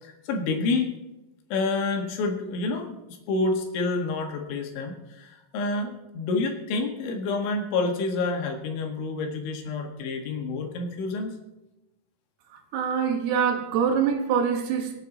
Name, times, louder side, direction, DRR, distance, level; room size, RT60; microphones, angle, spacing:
voice 1, 0.0-0.9 1.5-11.4, left 3 dB, 80° left, 2 dB, 4.1 m, -28 dB
voice 2, 12.7-15.0, right 7 dB, 70° right, 4 dB, 2.9 m, -24 dB
25.0 x 9.2 x 4.0 m, 0.98 s
omnidirectional pair, 5.4 m